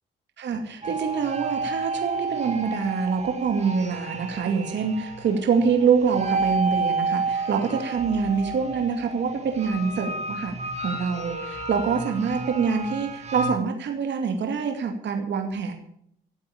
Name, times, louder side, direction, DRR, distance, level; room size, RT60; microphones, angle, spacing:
voice 1, 0.4-10.5 10.8-15.7, right 6 dB, 65° right, 4 dB, 2.5 m, -25 dB
sound 1, 0.8-13.5, right 3 dB, 35° right, 2.8 m, -31 dB
13.5 x 8.1 x 8.5 m, 0.69 s
cardioid pair, 90°, 20 cm